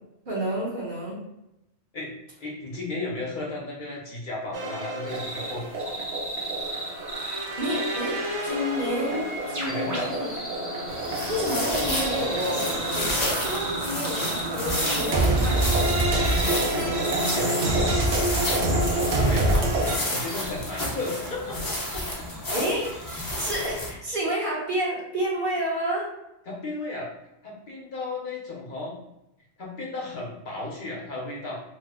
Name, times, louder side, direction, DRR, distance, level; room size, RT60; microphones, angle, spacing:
voice 1, 0.2-1.2 6.7-6.9 7.6-10.3 10.6-10.7 11.3-15.7 22.5-26.1, equal, 50° right, -5 dB, 1.1 m, -30 dB
voice 2, 2.4-5.6 9.6-10.1 16.4-17.9 18.5-19.7 20.1-21.6 23.3-23.4 26.5-27.1 27.4-29.0 29.6-31.6, left 2 dB, 55° left, -4 dB, 0.8 m, -34 dB
sound 1, 4.5-20.0, right 1 dB, 90° right, 0.9 m, -27 dB
sound 2, 5.1-23.3, right 1 dB, 20° right, 0.5 m, -37 dB
sound 3, 10.9-23.9, left 1 dB, 25° left, 0.5 m, -31 dB
2.9 x 2.1 x 3.4 m, 0.88 s
omnidirectional pair, 1.1 m